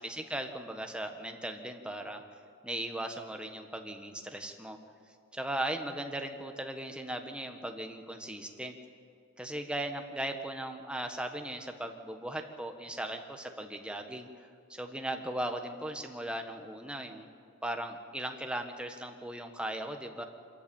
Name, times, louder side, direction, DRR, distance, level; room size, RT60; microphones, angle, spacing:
voice 1, 0.0-2.2 2.6-4.8 5.3-8.7 9.4-14.3 14.7-17.3 17.6-20.2, right 1 dB, 5° right, 5 dB, 1.4 m, -38 dB
25.5 x 14.0 x 8.8 m, 2.2 s
head